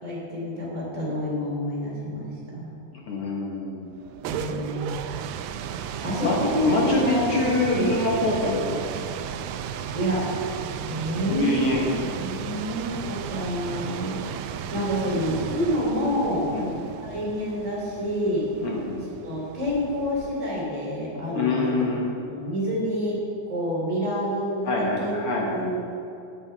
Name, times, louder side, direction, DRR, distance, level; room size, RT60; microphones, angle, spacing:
voice 1, 0.0-2.7 4.2-5.0 6.0-8.2 9.9-10.2 10.9-11.9 12.2-14.2 14.7-16.5 17.0-18.5 19.2-21.9 22.3-23.2 23.5-25.7, equal, 10° right, -5 dB, 2.8 m, -28 dB
voice 2, 2.9-3.9 6.2-8.9 11.3-12.3 16.5-16.7 18.6-19.0 21.3-22.0 24.6-25.7, left 2 dB, 55° left, -3 dB, 1.8 m, -25 dB
sound 1, 4.0-20.7, right 8 dB, 85° right, 1.6 m, -35 dB
16.0 x 8.7 x 3.5 m, 2.7 s
omnidirectional pair, 3.7 m